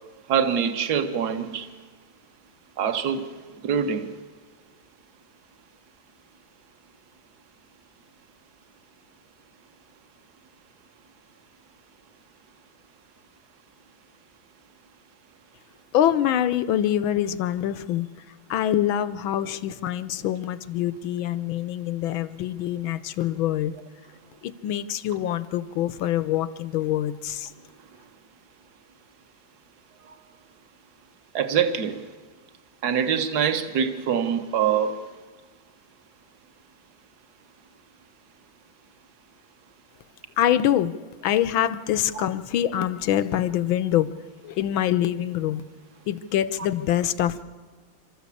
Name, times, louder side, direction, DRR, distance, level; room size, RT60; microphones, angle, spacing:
voice 1, 0.3-1.7 2.8-3.3 3.6-4.1 31.3-32.0 32.8-34.9 42.2-42.3, right 7 dB, 55° right, 9 dB, 1.8 m, -24 dB
voice 2, 15.9-18.1 18.5-23.7 24.4-27.5 40.4-40.9 41.2-44.1 44.4-45.6 46.1-47.4, left 11 dB, 85° left, 13 dB, 1.7 m, -25 dB
28.0 x 13.5 x 8.5 m, 1.5 s
omnidirectional pair, 2.2 m